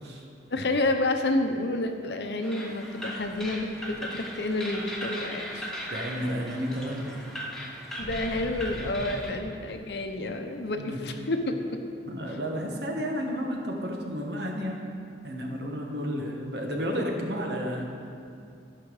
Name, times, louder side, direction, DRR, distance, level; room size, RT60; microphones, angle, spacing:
voice 1, 0.5-3.7 4.0-5.7 8.0-11.5, left 2 dB, 65° left, 5 dB, 0.8 m, -29 dB
sound 1, 2.4-9.3, equal, ahead, 1.1 m, -38 dB
sound 2, 3.1-5.9 6.3-6.4 8.0-9.2, equal, 80° right, 2.4 m, -44 dB
voice 2, 5.9-7.3 10.8-11.0 12.1-14.8 15.2-17.8, equal, 65° right, 1 dB, 1.3 m, -32 dB
14.0 x 5.8 x 4.9 m, 2.4 s
head